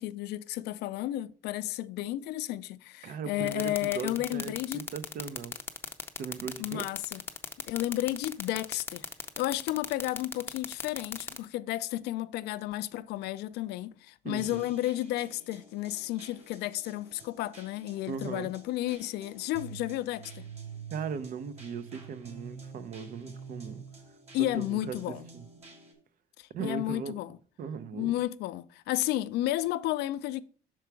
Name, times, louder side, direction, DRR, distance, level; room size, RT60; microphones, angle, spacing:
voice 1, 0.0-4.8 6.6-7.2 7.6-9.0 9.4-20.4 24.3-25.2 26.4-27.4 27.9-30.4, left 15 dB, 80° left, 0.4 m, -32 dB
voice 2, 3.0-5.6 6.2-6.8 14.2-14.6 18.1-18.5 20.9-23.8 24.5-25.5 26.5-27.1 27.6-28.1, right 6 dB, 55° right, 0.6 m, -38 dB
sound 1, 3.5-11.4, left 3 dB, 15° left, 0.5 m, -36 dB
sound 2, 14.4-25.9, right 5 dB, 40° right, 2.0 m, -48 dB
5.9 x 4.5 x 4.6 m
cardioid pair, 110°, 17 cm